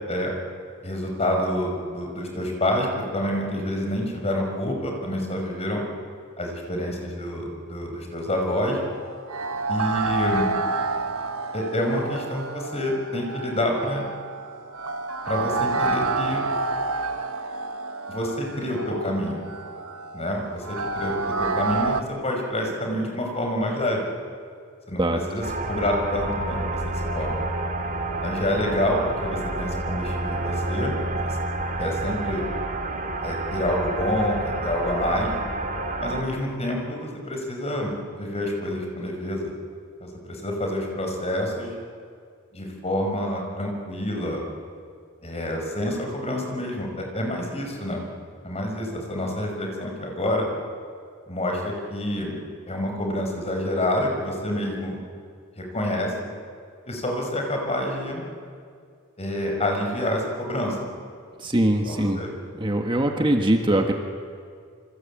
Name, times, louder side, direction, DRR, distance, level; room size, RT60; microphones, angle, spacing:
voice 1, 0.8-2.9 3.1-5.8 6.4-8.8 9.7-10.4 11.5-14.1 15.3-16.4 18.1-19.4 20.1-24.0 24.9-27.5 28.2-30.9 31.2-31.4 31.8-32.4 33.2-35.3 36.0-39.5 40.0-41.7 42.5-44.5 45.2-48.0 48.4-50.5 51.3-52.3 52.7-55.0 55.6-56.3 56.8-58.3 59.2-60.8 61.9-62.3, left 1 dB, 30° left, 2 dB, 5.5 m, -27 dB
sound 1, 8.7-22.0, right 3 dB, 85° right, 1.5 m, -29 dB
sound 2, 25.4-36.2, right 2 dB, 40° right, 2.6 m, -29 dB
voice 2, 61.4-62.2 62.5-63.9, right 1 dB, 25° right, 4 dB, 1.5 m, -22 dB
27.5 x 24.5 x 8.7 m, 2.2 s
head